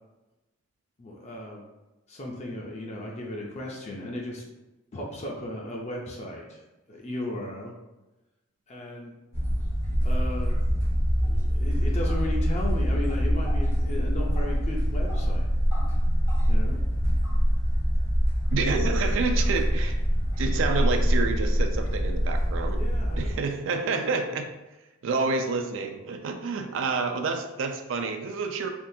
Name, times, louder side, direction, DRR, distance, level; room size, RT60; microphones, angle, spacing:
voice 1, 1.0-1.6 2.1-4.4 4.9-6.6 6.9-7.7 8.7-9.2 10.0-10.6 11.2-15.4 16.5-16.8 22.8-24.2, left 1 dB, 35° left, -1 dB, 0.5 m, -36 dB
sound 1, 9.3-23.3, equal, 70° left, 1.0 m, -24 dB
voice 2, 18.5-20.0 20.4-22.8 23.1-24.5 25.0-28.7, right 4 dB, 65° right, 6 dB, 0.4 m, -28 dB
3.5 x 2.3 x 2.7 m, 1.0 s
head